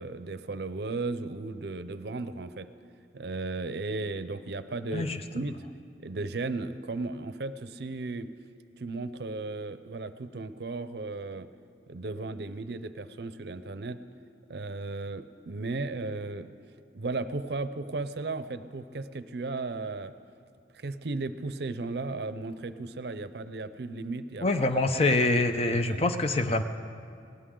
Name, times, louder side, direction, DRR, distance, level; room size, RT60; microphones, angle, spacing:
voice 1, 0.0-2.7 3.1-5.7 6.0-8.3 8.8-11.5 11.9-14.0 14.5-16.5 16.9-20.1 20.7-24.5 25.6-26.1, right 3 dB, 65° right, 12 dB, 0.6 m, -35 dB
voice 2, 24.4-26.6, left 2 dB, 35° left, 8 dB, 0.6 m, -25 dB
20.0 x 17.5 x 3.8 m, 2.3 s
head